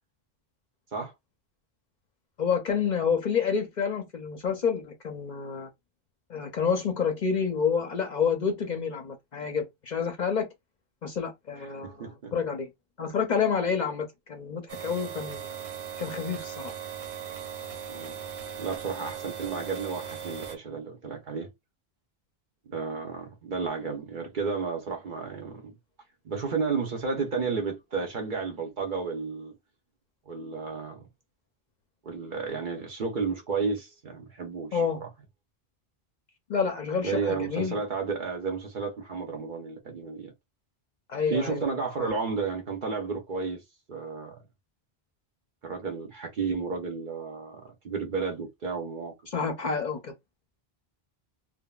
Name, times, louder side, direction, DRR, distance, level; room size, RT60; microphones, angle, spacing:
voice 1, 2.4-5.7 6.3-10.5 11.0-12.7 13.0-15.6 16.0-16.6 34.7-35.0 36.5-37.8 41.1-41.7 42.0-42.1 49.3-50.1, left 6 dB, 50° left, 0.6 m, -28 dB
voice 2, 11.8-12.3 17.9-18.2 18.6-21.5 22.7-25.7 26.2-29.5 30.3-31.1 32.0-35.1 37.0-40.3 41.3-43.6 43.9-44.4 45.6-49.1, right 4 dB, 55° right, 0.8 m, -32 dB
sound 1, 14.7-20.6, right 8 dB, 85° right, 0.9 m, -38 dB
3.5 x 2.0 x 2.3 m
omnidirectional pair, 1.1 m